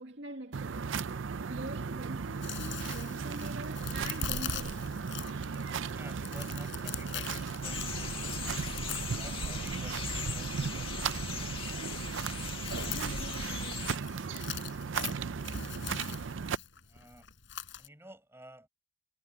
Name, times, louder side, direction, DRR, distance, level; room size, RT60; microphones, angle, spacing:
voice 1, 0.0-5.0 12.9-14.0, right 2 dB, 65° right, 2.4 m, -44 dB
sound 1, 0.5-16.6, right 5 dB, 80° right, 0.5 m, -36 dB
Chewing mastication, 2.2-17.9, left 10 dB, 75° left, 4.8 m, -44 dB
voice 2, 5.9-8.6 9.0-11.1 16.9-17.3 17.8-18.7, right 1 dB, 15° right, 6.5 m, -52 dB
sound 2, 7.6-14.0, left 5 dB, 30° left, 2.1 m, -39 dB
head